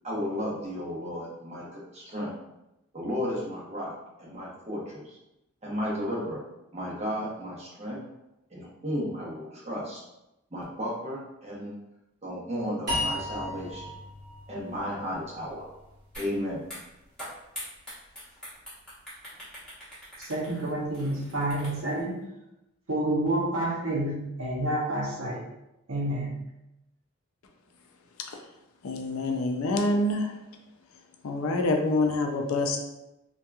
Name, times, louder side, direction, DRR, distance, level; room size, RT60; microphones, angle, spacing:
voice 1, 0.0-2.3 2.9-5.2 5.6-6.4 6.7-8.0 8.5-10.0 10.5-11.7 12.2-13.9 14.5-15.7 16.2-16.6, equal, 30° right, -6 dB, 0.7 m, -34 dB
sound 1, 12.9-16.1, left 1 dB, 55° right, 1.0 m, -34 dB
sound 2, 16.1-16.3 16.6-22.0, equal, 5° left, 0.9 m, -43 dB
voice 2, 20.2-22.2 22.9-25.4 25.9-26.3, right 1 dB, 80° right, -3 dB, 0.8 m, -29 dB
voice 3, 28.8-30.4 31.2-32.8, left 2 dB, 80° left, 3 dB, 0.4 m, -26 dB
2.8 x 2.3 x 2.2 m, 0.91 s
head